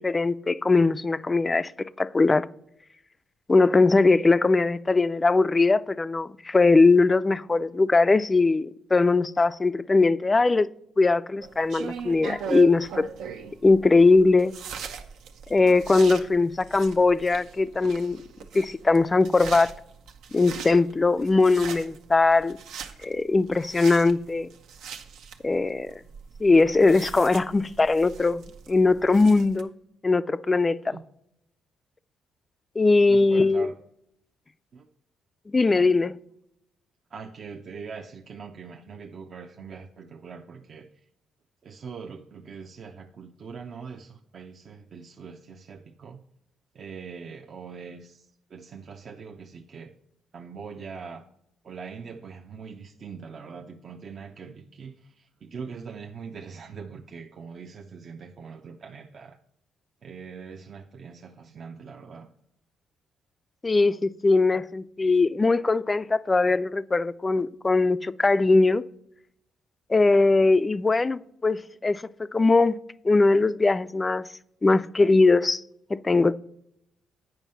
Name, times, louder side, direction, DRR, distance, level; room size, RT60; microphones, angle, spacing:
voice 1, 0.0-2.5 3.5-13.1 13.6-14.5 15.5-18.2 18.5-19.7 20.3-22.6 23.0-24.5 25.4-25.9 26.4-29.7 30.0-31.0 32.8-33.7 35.5-36.2 63.6-68.8 69.9-72.8 73.0-74.3 74.6-75.6 75.9-76.3, left 3 dB, 25° left, 0.3 m, -21 dB
sound 1, 11.4-29.6, right 6 dB, 85° right, 0.8 m, -40 dB
voice 2, 33.1-33.8 34.7-34.9 37.1-41.0 41.6-46.2 46.7-49.9 50.3-51.2 51.6-59.4 60.0-62.3 70.4-70.5, right 5 dB, 50° right, 0.6 m, -42 dB
9.1 x 5.4 x 5.5 m
cardioid pair, 90°, 0 cm